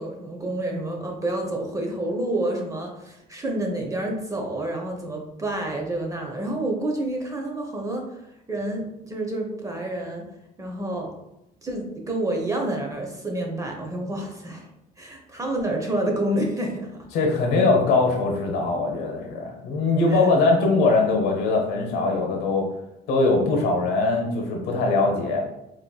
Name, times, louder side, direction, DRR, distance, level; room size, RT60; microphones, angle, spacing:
voice 1, 0.0-8.2 8.5-10.2 10.6-11.1 11.6-14.7 15.0-17.0 20.1-20.3, right 1 dB, 20° right, 1 dB, 0.8 m, -28 dB
voice 2, 17.1-22.7 23.1-25.4, left 3 dB, 80° left, 1 dB, 1.0 m, -21 dB
4.2 x 3.2 x 2.3 m, 0.86 s
cardioid pair, 110°, 17 cm